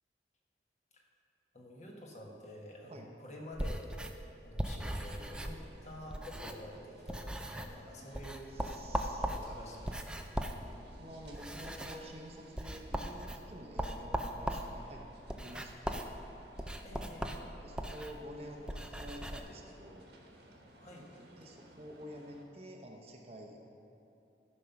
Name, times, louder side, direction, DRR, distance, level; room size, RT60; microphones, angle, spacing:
voice 1, 1.5-3.9 4.4-8.8 9.2-10.0 16.8-17.5 20.7-21.1, left 1 dB, 40° left, -1 dB, 1.3 m, -49 dB
sound 1, 3.5-6.8 7.1-7.8 8.1-19.4, equal, 5° right, 0.4 m, -39 dB
sound 2, 4.7-22.4, right 1 dB, 75° right, 1.4 m, -59 dB
voice 2, 8.5-9.3 10.8-15.0 15.3-16.1 17.6-20.1 21.3-23.6, equal, 35° right, 1 dB, 0.7 m, -49 dB
13.0 x 5.3 x 5.8 m, 2.8 s
head